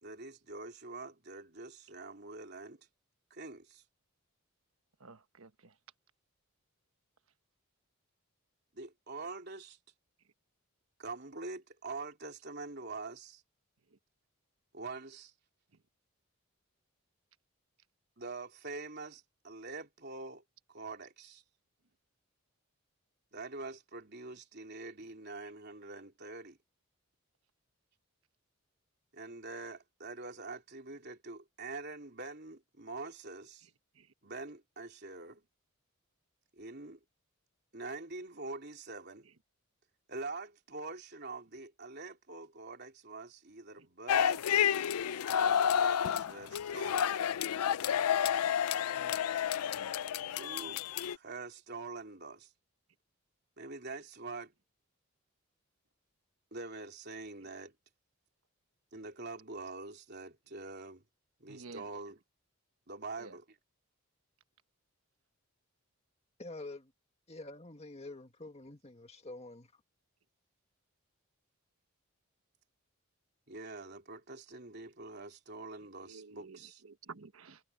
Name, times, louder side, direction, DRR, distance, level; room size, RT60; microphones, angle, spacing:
voice 1, 0.0-2.8 3.3-3.8 8.7-9.8 11.0-13.4 14.7-15.3 18.2-20.4 20.7-21.4 23.3-26.6 29.1-33.7 34.2-35.4 36.5-37.0 37.7-39.3 40.1-44.4 45.3-47.1 50.4-52.5 53.6-54.5 56.5-57.7 58.9-61.0 61.4-62.2 62.9-63.5 73.5-76.8, right 3 dB, 50° right, 3.6 m, -45 dB
voice 2, 5.0-5.7 34.0-34.1 48.9-49.2 61.5-61.8 63.2-63.4 76.0-76.6 76.8-77.6, right 4 dB, 70° right, 1.2 m, -51 dB
sound 1, 44.1-51.2, left 9 dB, 90° left, 0.4 m, -30 dB
voice 3, 66.4-66.9 67.3-69.7, left 2 dB, 30° left, 1.8 m, -47 dB
head